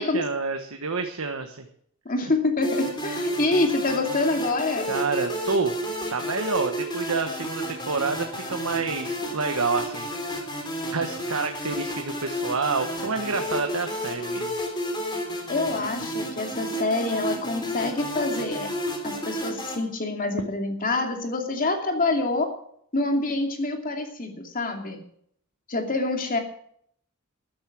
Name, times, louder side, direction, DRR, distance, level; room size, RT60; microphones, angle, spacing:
voice 1, 0.0-1.7 4.9-5.8 6.1-10.1 10.9-14.6, right 4 dB, 85° right, 5 dB, 1.3 m, -28 dB
voice 2, 2.0-4.9 15.5-18.7 19.0-22.5 22.9-25.0 25.7-26.4, left 2 dB, 40° left, 4 dB, 2.5 m, -26 dB
sound 1, 2.6-19.8, equal, 20° left, 3.6 m, -31 dB
13.0 x 11.0 x 6.1 m, 0.66 s
head